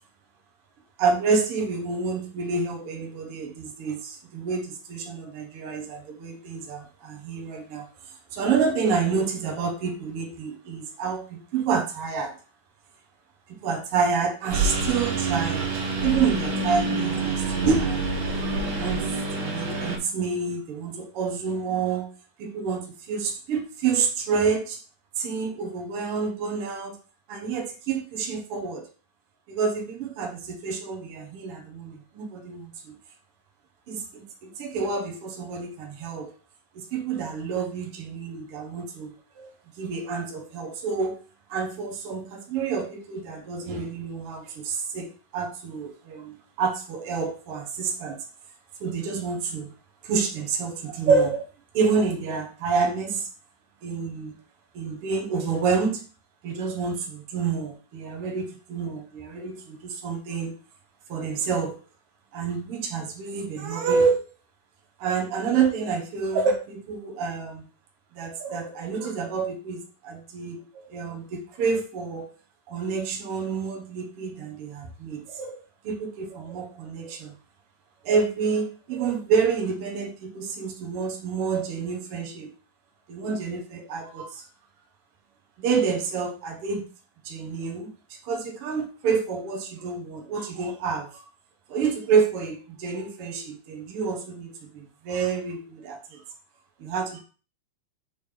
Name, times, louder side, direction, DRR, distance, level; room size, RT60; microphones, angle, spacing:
voice 1, 1.0-7.9 8.3-12.4 13.5-15.7 16.0-18.1 18.4-22.1 22.4-24.8 25.2-27.0 27.3-28.9 29.5-33.0 33.9-36.3 36.7-41.2 41.5-48.2 48.8-49.7 50.0-51.4 51.7-53.3 53.8-54.4 54.7-56.0 56.4-60.6 61.1-61.8 62.3-64.3 65.0-67.6 68.1-72.3 72.7-77.3 78.0-82.5 83.1-84.4 85.6-86.9 87.2-91.2 91.7-96.2 96.8-97.2, right 5 dB, 75° right, 3 dB, 1.3 m, -28 dB
Engine, 14.5-20.0, right 3 dB, 55° right, 2.8 m, -27 dB
6.3 x 3.5 x 5.0 m, 0.36 s
omnidirectional pair, 4.5 m